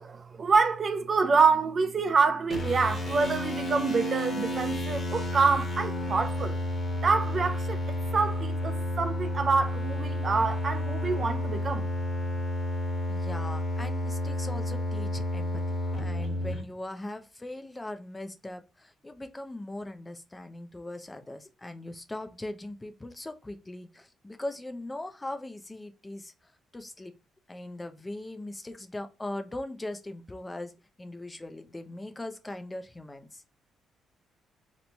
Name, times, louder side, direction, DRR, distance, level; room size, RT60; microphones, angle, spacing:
voice 1, 0.0-6.6 7.0-11.9, right 4 dB, 45° right, 0.4 m, -26 dB
sound 1, 2.5-16.6, left 1 dB, 35° left, 1.2 m, -31 dB
voice 2, 13.1-27.1 27.5-30.7 31.0-33.4, left 1 dB, 15° left, 0.5 m, -40 dB
3.0 x 2.2 x 3.9 m
cardioid pair, 90°, 0 cm